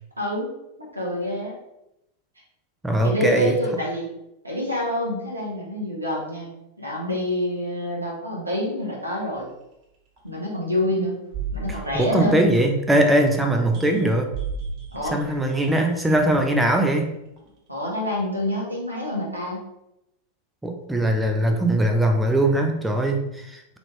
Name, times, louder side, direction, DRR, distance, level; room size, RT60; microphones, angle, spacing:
voice 1, 0.2-0.5 0.8-1.5 3.0-4.1 4.4-6.5 6.8-9.5 10.2-11.2 11.5-12.4 14.9-15.2 17.7-19.6, equal, 85° right, -3 dB, 0.9 m, -27 dB
voice 2, 2.8-3.6 11.7-14.3 15.1-17.1 20.6-23.8, right 1 dB, 5° right, 3 dB, 0.4 m, -21 dB
sound 1, 9.4-9.5 10.2-10.3 11.3-13.0 13.4-16.6 17.4-17.5, right 5 dB, 40° right, 0.9 m, -35 dB
3.1 x 2.4 x 3.2 m, 0.85 s
figure-of-eight pair, 90°, 0 cm